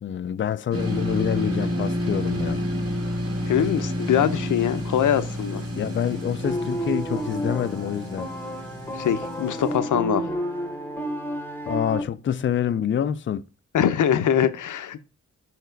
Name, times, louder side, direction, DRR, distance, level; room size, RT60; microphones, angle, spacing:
voice 1, 0.0-2.7 5.8-8.4 11.7-13.5, left 9 dB, 40° left, 0.4 m, -27 dB
sound 1, 0.7-9.8, equal, 50° right, 1.9 m, -29 dB
voice 2, 3.5-5.6 8.9-10.3 13.7-15.0, left 9 dB, 85° left, 0.7 m, -23 dB
sound 2, 6.4-12.0, right 1 dB, 5° left, 0.9 m, -30 dB
6.0 x 4.6 x 4.5 m
wide cardioid pair, 135°, 30 cm